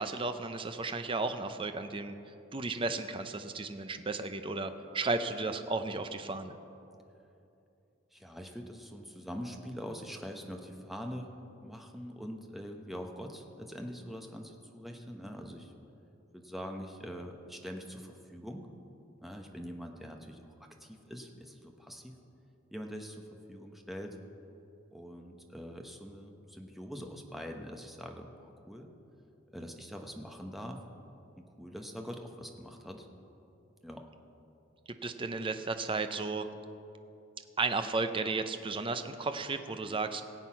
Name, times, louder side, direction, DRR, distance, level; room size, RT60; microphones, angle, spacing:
voice 1, 0.0-2.2 2.5-6.6 35.0-36.5 37.6-40.3, right 3 dB, 25° right, 9 dB, 0.6 m, -34 dB
voice 2, 8.1-11.3 11.6-15.7 16.3-18.7 19.2-22.1 22.7-23.2 23.5-24.2 24.9-28.9 29.5-30.8 31.4-33.1 33.8-34.1, equal, ahead, 2 dB, 0.9 m, -44 dB
18.5 x 8.0 x 5.8 m, 2.8 s
head